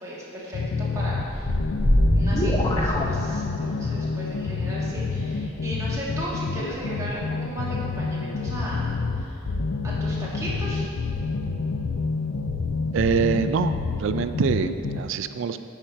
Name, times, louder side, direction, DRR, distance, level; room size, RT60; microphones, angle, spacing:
voice 1, 0.0-1.5 2.1-8.8 9.2-9.4 9.8-10.8, right 1 dB, 15° right, -7 dB, 1.4 m, -36 dB
sound 1, 0.5-15.0, left 4 dB, 75° left, 0.4 m, -28 dB
sound 2, 1.1-3.8, equal, 20° left, 0.6 m, -23 dB
voice 2, 12.9-15.6, right 6 dB, 65° right, 11 dB, 0.3 m, -25 dB
8.4 x 5.5 x 4.5 m, 2.7 s
head